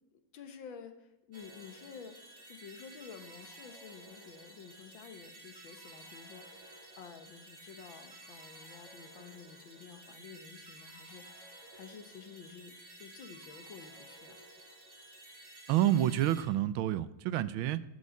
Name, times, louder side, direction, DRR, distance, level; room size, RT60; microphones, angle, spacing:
voice 1, 0.1-2.2 2.5-12.7 13.0-14.4, left 6 dB, 70° left, 8 dB, 1.9 m, -51 dB
sound 1, 1.3-16.4, right 1 dB, 50° right, 3.3 m, -53 dB
voice 2, 15.7-17.8, right 12 dB, 80° right, 16 dB, 1.4 m, -28 dB
11.5 x 8.2 x 8.3 m, 0.96 s
omnidirectional pair, 2.2 m